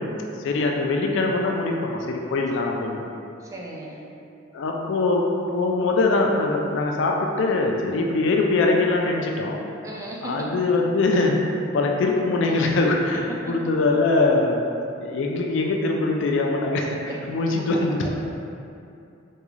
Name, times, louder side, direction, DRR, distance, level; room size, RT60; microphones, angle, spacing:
voice 1, 0.0-3.1 4.5-9.6 10.2-14.5 15.0-17.0 17.3-18.1, left 3 dB, 65° left, 1 dB, 0.4 m, -22 dB
voice 2, 3.4-4.1 8.1-8.3 9.8-10.5 11.7-11.8 13.1-13.6 17.1-17.2 18.0-18.1, right 1 dB, 15° right, -3 dB, 0.3 m, -37 dB
3.6 x 2.3 x 3.1 m, 2.6 s
head